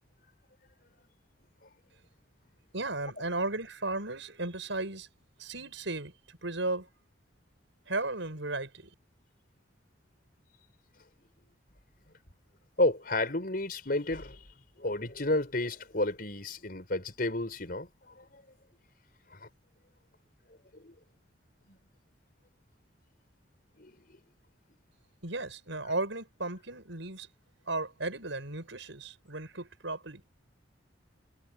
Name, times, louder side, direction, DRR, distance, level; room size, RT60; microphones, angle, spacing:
voice 1, 2.7-5.1 5.4-6.9 7.9-8.9 25.2-27.3 27.7-30.2, right 2 dB, 75° right, 5.7 m, -35 dB
voice 2, 12.8-14.4 14.8-18.4 19.3-19.5 20.7-20.9 21.7-21.8 23.8-24.2, left 2 dB, 50° left, 5.2 m, -32 dB
head